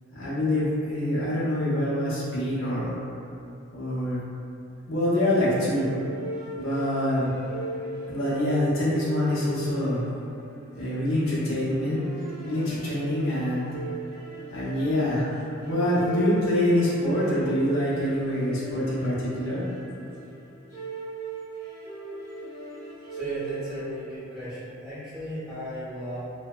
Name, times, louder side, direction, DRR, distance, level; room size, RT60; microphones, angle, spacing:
voice 1, 0.1-2.9 3.7-4.2 4.9-5.9 6.6-7.3 8.1-10.1 10.7-12.1 12.4-13.7 14.5-15.3 15.6-19.6, left 1 dB, 75° left, -8 dB, 0.6 m, -25 dB
sound 1, 5.7-24.2, right 2 dB, 55° right, 0.8 m, -38 dB
voice 2, 23.1-26.2, equal, 5° right, -13 dB, 0.9 m, -35 dB
2.6 x 2.1 x 2.2 m, 2.6 s
head